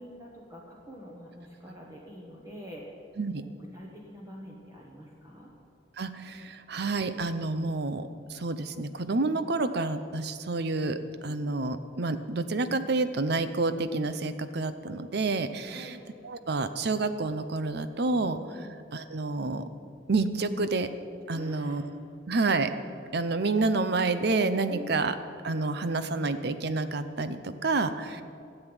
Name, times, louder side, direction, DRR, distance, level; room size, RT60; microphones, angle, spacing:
voice 1, 0.0-2.8 3.4-5.5 15.6-16.0 18.5-18.7 21.3-21.8 24.7-25.0, equal, 20° right, -3 dB, 1.4 m, -46 dB
voice 2, 6.0-11.0 11.2-15.9 16.2-18.4 18.9-19.7 20.1-20.9 21.3-21.9 22.3-22.7 23.1-25.1 25.4-28.2, right 3 dB, 60° right, 11 dB, 0.7 m, -29 dB
13.5 x 8.0 x 8.9 m, 2.4 s
head